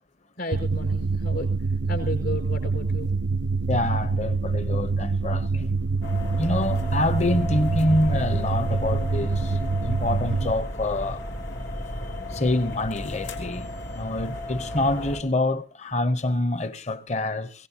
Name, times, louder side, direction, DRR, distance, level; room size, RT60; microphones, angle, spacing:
voice 1, 0.4-1.5 1.9-3.1, left 1 dB, 60° left, 5.2 m, -33 dB
sound 1, 0.5-10.5, right 3 dB, 75° right, 0.7 m, -26 dB
voice 2, 3.7-5.7 6.4-11.2 12.3-13.7 13.9-17.5, left 1 dB, 40° left, 0.9 m, -26 dB
sound 2, 6.0-15.2, left 1 dB, 90° left, 3.8 m, -34 dB
22.5 x 17.5 x 2.9 m
head